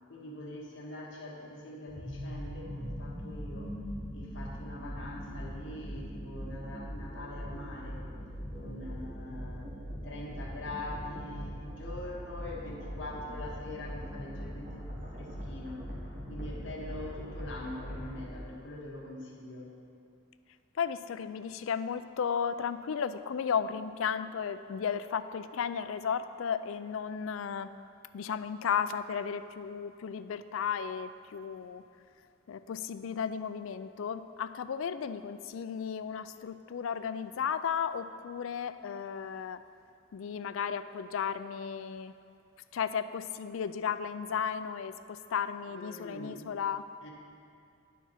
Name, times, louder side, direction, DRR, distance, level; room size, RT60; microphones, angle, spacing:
voice 1, 0.1-3.8 4.1-8.1 8.5-9.7 10.0-15.9 16.3-19.8 45.7-46.4 47.0-47.1, left 1 dB, 60° left, -3 dB, 1.3 m, -43 dB
sound 1, 1.9-18.2, equal, 40° right, 2.0 m, -41 dB
voice 2, 20.8-27.7 28.1-31.8 32.5-39.6 40.1-42.1 42.7-46.9, left 7 dB, 75° left, 12 dB, 0.4 m, -34 dB
11.0 x 4.7 x 5.7 m, 2.4 s
head